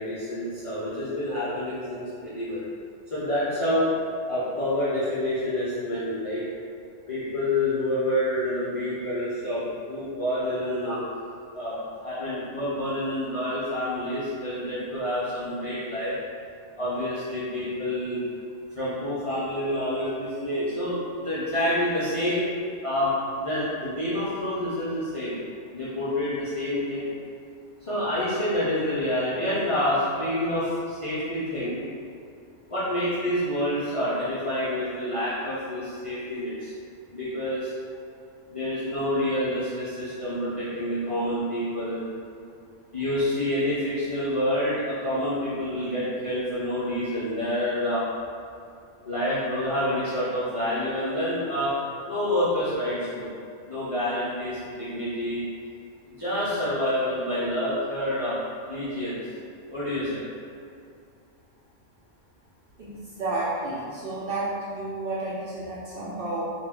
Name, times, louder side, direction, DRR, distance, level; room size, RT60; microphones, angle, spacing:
voice 1, 0.0-2.6 3.1-3.9 4.3-6.4 7.1-11.0 11.5-16.2 16.8-18.2 18.7-22.5 22.8-25.4 25.7-27.1 27.8-31.8 32.7-36.7 37.1-37.7 38.5-42.0 42.9-48.0 49.0-51.7 52.0-53.3 53.7-55.4 56.2-58.3 58.7-59.2 59.7-60.3, left 1 dB, 60° left, -11 dB, 0.3 m, -28 dB
voice 2, 62.8-66.4, right 2 dB, 65° right, -8 dB, 0.6 m, -31 dB
2.2 x 2.1 x 3.5 m, 2.4 s
omnidirectional pair, 1.3 m